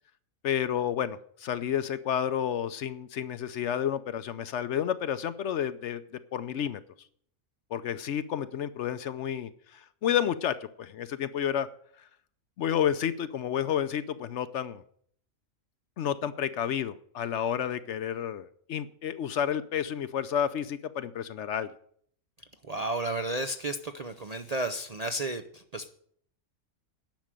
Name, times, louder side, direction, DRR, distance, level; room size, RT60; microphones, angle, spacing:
voice 1, 0.4-6.0 6.3-6.8 7.7-11.7 12.6-14.8 16.0-21.7, left 9 dB, 65° left, 13 dB, 0.8 m, -30 dB
voice 2, 22.7-25.9, right 2 dB, 45° right, 7 dB, 0.5 m, -32 dB
10.5 x 6.2 x 9.0 m, 0.62 s
omnidirectional pair, 1.4 m